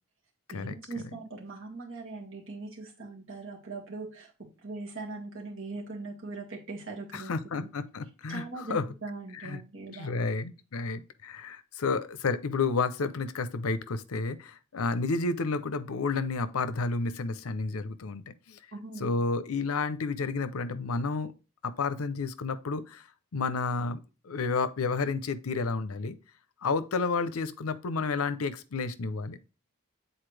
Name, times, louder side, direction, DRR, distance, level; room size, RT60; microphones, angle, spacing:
voice 1, 0.5-7.7 8.3-10.2 18.7-19.2, right 3 dB, 65° right, 1.9 m, -41 dB
voice 2, 7.1-8.8 9.4-9.6 9.9-18.6 19.0-21.3 21.6-23.0 23.3-24.0 24.2-26.2 26.6-29.4, left 4 dB, 90° left, 0.6 m, -31 dB
7.9 x 4.1 x 3.3 m
head